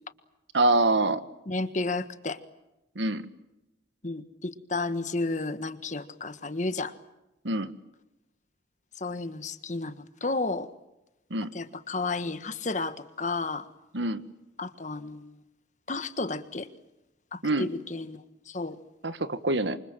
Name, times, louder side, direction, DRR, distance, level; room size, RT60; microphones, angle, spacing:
voice 1, 0.5-1.2 2.9-3.3 7.4-7.7 11.3-11.5 13.9-14.2 17.4-17.7 19.0-19.8, right 2 dB, 75° right, 12 dB, 1.7 m, -25 dB
voice 2, 1.5-2.4 4.0-6.9 9.0-10.7 11.5-13.7 14.6-15.3 15.9-16.7 17.3-18.8, left 3 dB, 40° left, 11 dB, 1.5 m, -32 dB
28.0 x 25.0 x 7.6 m, 0.95 s
head